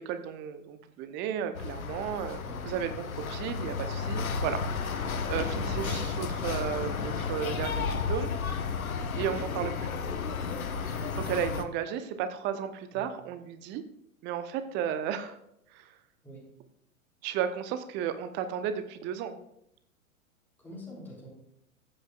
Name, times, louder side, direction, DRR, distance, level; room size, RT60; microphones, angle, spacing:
voice 1, 0.0-2.4 2.6-4.6 4.9-8.3 9.1-9.7 10.7-13.8 14.2-15.4 15.7-16.0 17.2-19.4, right 9 dB, 25° right, 10 dB, 0.8 m, -34 dB
sound 1, 1.5-11.6, left 5 dB, 70° left, 1.1 m, -33 dB
voice 2, 2.4-2.7 8.9-9.4 12.9-13.1 16.2-16.4 20.6-21.3, equal, 5° left, -4 dB, 3.2 m, -45 dB
15.0 x 8.7 x 2.4 m, 0.76 s
figure-of-eight pair, 105°, 43 cm